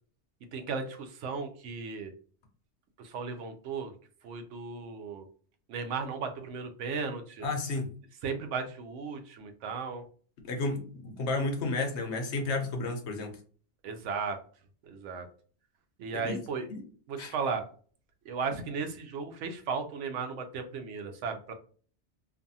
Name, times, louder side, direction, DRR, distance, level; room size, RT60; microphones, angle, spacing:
voice 1, 0.5-2.1 3.0-3.9 4.2-5.3 5.7-7.5 8.2-10.0 13.8-14.4 14.8-15.3 16.0-16.6 17.1-17.6 18.3-21.5, right 5 dB, 85° right, 6 dB, 0.9 m, -35 dB
voice 2, 7.4-7.9 10.4-13.4 16.2-16.4 16.7-16.8 17.2-17.3, left 3 dB, 70° left, 4 dB, 1.0 m, -32 dB
2.6 x 2.4 x 2.6 m, 0.43 s
omnidirectional pair, 1.2 m